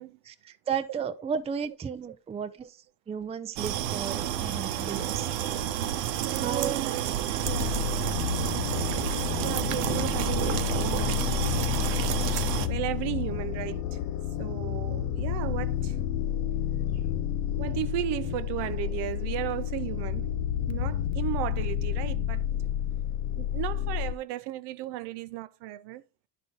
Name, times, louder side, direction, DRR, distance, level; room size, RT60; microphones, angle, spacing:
voice 1, 0.2-2.8 3.1-5.3 6.4-6.7, right 6 dB, 15° right, 0.4 m, -34 dB
sound 1, 3.6-12.7, right 11 dB, 80° right, 0.9 m, -30 dB
voice 2, 6.2-7.1 7.5-8.0 9.4-11.4 12.7-14.0 14.4-16.0 17.6-20.3 20.7-22.4 23.4-26.0, right 13 dB, 55° right, 0.6 m, -35 dB
sound 2, 7.4-24.1, left 11 dB, 70° left, 0.6 m, -30 dB
10.5 x 4.3 x 3.9 m
supercardioid pair, 90°, 49 cm